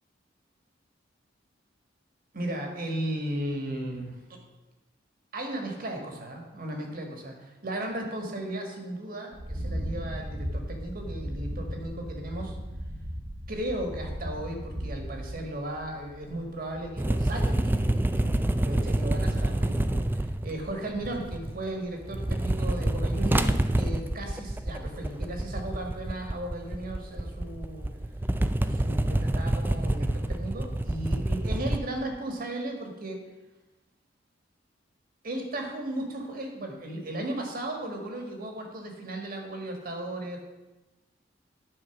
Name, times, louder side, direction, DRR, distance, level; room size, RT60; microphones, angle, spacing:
voice 1, 2.3-4.2 5.3-12.6 13.5-27.9 28.6-33.2 35.2-40.4, right 1 dB, 50° right, 3 dB, 1.7 m, -35 dB
sound 1, 9.3-17.9 18.3-18.6 19.1-20.1 20.4-20.7, equal, 70° right, 2.0 m, -37 dB
sound 2, 17.0-21.7 22.0-31.8, right 1 dB, 10° right, 0.3 m, -27 dB
11.0 x 4.5 x 5.8 m, 1.1 s
head